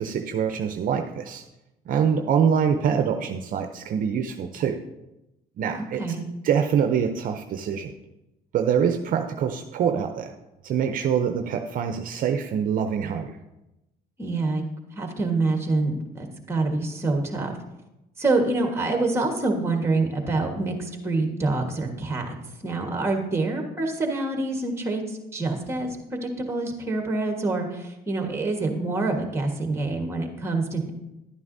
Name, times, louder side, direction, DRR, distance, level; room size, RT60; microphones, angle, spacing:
voice 1, 0.0-1.4 1.9-4.8 5.6-6.0 6.4-7.9 8.5-10.3 10.6-13.4, right 7 dB, 55° right, 6 dB, 0.6 m, -25 dB
voice 2, 5.7-6.3 14.2-14.6 14.9-17.5 18.2-22.4 22.6-30.9, right 2 dB, 15° right, 3 dB, 1.4 m, -26 dB
11.0 x 9.3 x 2.7 m, 0.95 s
cardioid pair, 110°, 17 cm